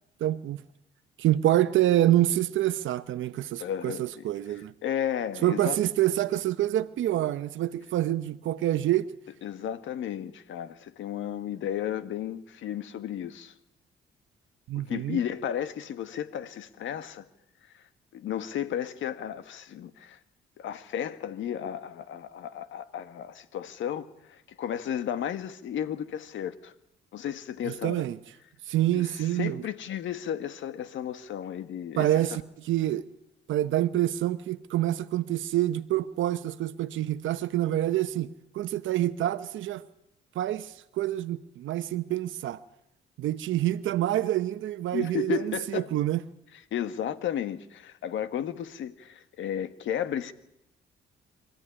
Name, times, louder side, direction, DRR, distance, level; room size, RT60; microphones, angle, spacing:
voice 1, 0.2-0.6 1.2-4.7 5.4-9.1 14.7-15.2 27.7-28.2 28.7-29.6 32.0-33.0 33.5-38.3 38.5-39.9 40.3-42.6 43.2-46.2, right 13 dB, 75° right, 0.9 m, -27 dB
voice 2, 3.6-5.9 9.4-13.5 14.7-17.2 17.7-17.8 18.1-20.2 20.6-26.7 27.1-28.0 28.9-32.4 44.9-45.9 46.7-50.3, left 9 dB, 75° left, 1.6 m, -34 dB
25.0 x 15.0 x 10.0 m
cardioid pair, 90°, 20 cm